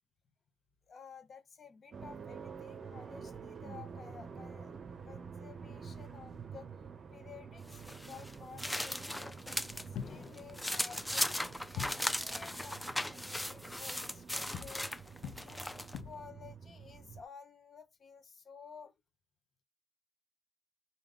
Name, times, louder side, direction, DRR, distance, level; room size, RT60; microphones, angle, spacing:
voice 1, 0.9-4.7 5.0-6.7 7.1-14.9 15.4-18.9, left 6 dB, 45° left, 0.7 m, -53 dB
sound 1, 1.9-17.2, right 6 dB, 45° right, 0.6 m, -49 dB
sound 2, 7.7-9.9 10.2-16.0, left 1 dB, 5° left, 0.4 m, -37 dB
sound 3, 9.9-10.6 11.8-12.2 14.5-16.4, left 8 dB, 75° left, 0.5 m, -44 dB
3.6 x 2.7 x 3.5 m
cardioid pair, 90°, 0 cm